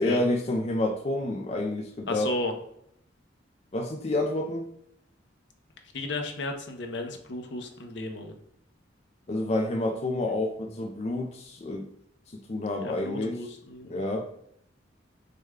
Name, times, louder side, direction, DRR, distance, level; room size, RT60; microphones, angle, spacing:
voice 1, 0.0-2.3 3.7-4.7 9.3-11.9 12.3-13.4 13.9-14.3, left 1 dB, 35° left, 2 dB, 0.4 m, -29 dB
voice 2, 2.1-2.5 5.9-8.3 12.8-14.0, left 2 dB, 65° left, 4 dB, 0.7 m, -34 dB
6.4 x 2.2 x 3.6 m, 0.71 s
head